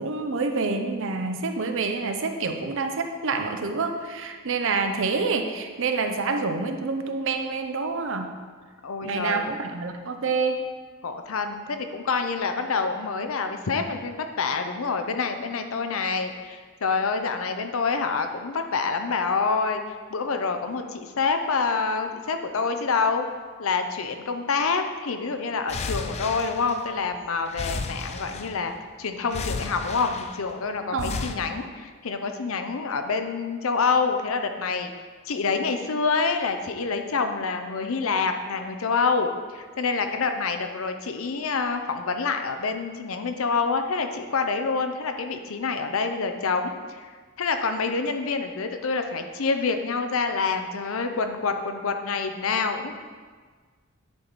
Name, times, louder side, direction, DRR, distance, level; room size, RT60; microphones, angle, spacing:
voice 1, 0.0-8.4 9.0-10.6 30.9-31.3, right 4 dB, 65° right, 6 dB, 0.6 m, -27 dB
voice 2, 8.8-9.5 11.0-23.3 23.6-28.7 29.0-34.9 35.3-47.1 47.4-52.9, left 4 dB, 70° left, 7 dB, 0.6 m, -27 dB
sound 1, 25.7-27.1 27.5-28.8 29.3-30.5 31.0-31.3, left 4 dB, 30° left, 0.3 m, -33 dB
9.6 x 4.5 x 4.0 m, 1.5 s
head